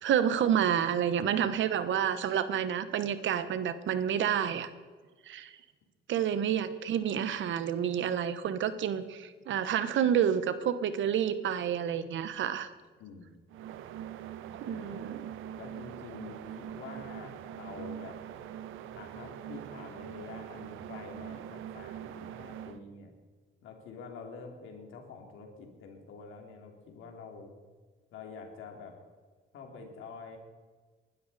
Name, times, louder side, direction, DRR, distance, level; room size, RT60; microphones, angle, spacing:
voice 1, 0.0-4.7 5.3-5.5 6.1-12.7 14.7-15.2, right 9 dB, 75° right, 12 dB, 1.2 m, -29 dB
voice 2, 13.0-13.3 14.7-15.0 15.5-18.2 18.9-23.1 23.6-27.5 28.1-28.9 29.5-30.4, left 5 dB, 85° left, 3 dB, 3.0 m, -47 dB
sound 1, 13.5-22.8, right 10 dB, 90° right, 0.8 m, -43 dB
20.0 x 12.5 x 4.2 m, 1.4 s
cardioid pair, 90°, 20 cm